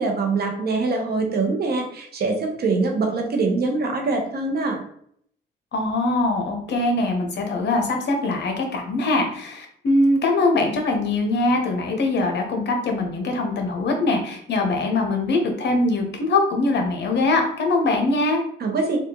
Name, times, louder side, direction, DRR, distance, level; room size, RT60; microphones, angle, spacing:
voice 1, 0.0-4.8 18.6-19.0, right 3 dB, 50° right, 2 dB, 0.8 m, -23 dB
voice 2, 5.7-18.4, left 2 dB, 60° left, 3 dB, 0.8 m, -22 dB
3.5 x 2.4 x 2.9 m, 0.66 s
cardioid pair, 90°, 20 cm